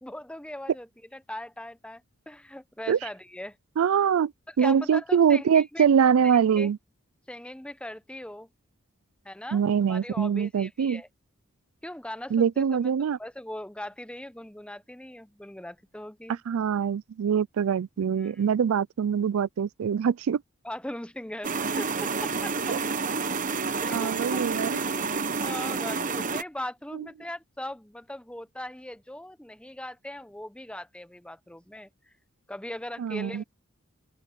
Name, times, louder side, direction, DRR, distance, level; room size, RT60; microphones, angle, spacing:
voice 1, 0.0-3.6 4.5-5.9 6.2-6.7 7.3-8.5 9.2-11.1 11.8-12.9 13.2-16.4 18.2-18.4 20.6-22.8 23.8-24.4 24.7-25.1 25.4-32.1 32.5-33.4, left 1 dB, 5° left, 0.8 m, -40 dB
voice 2, 3.8-4.3 4.6-6.8 9.5-11.0 12.3-13.2 16.5-20.4 22.7-22.8 23.9-24.8 26.9-27.1 33.0-33.4, right 7 dB, 80° right, 0.4 m, -24 dB
sound 1, 21.4-26.4, right 4 dB, 40° right, 1.0 m, -29 dB
open air
head